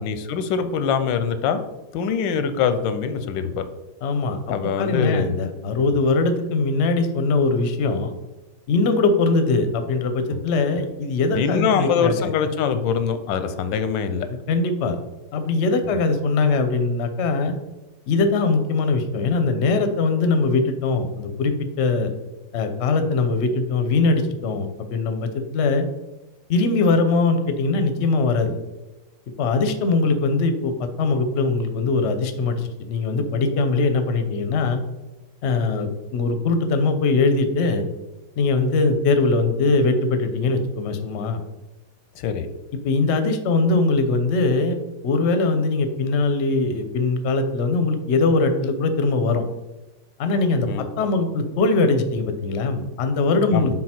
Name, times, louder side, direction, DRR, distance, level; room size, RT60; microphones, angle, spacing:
voice 1, 0.0-1.6 1.9-3.6 4.5-5.3 11.3-14.3 42.2-42.5 50.7-50.9 53.5-53.7, left 7 dB, 90° left, 10 dB, 1.3 m, -23 dB
voice 2, 4.0-4.4 4.8-8.1 8.7-12.3 14.5-15.0 15.3-17.5 18.1-22.1 22.5-25.9 26.5-28.6 29.4-34.8 35.4-37.8 38.4-41.4 42.8-44.8 45.0-49.4 50.2-53.8, left 3 dB, 60° left, 8 dB, 0.7 m, -21 dB
6.5 x 4.0 x 4.3 m, 1.1 s
omnidirectional pair, 2.0 m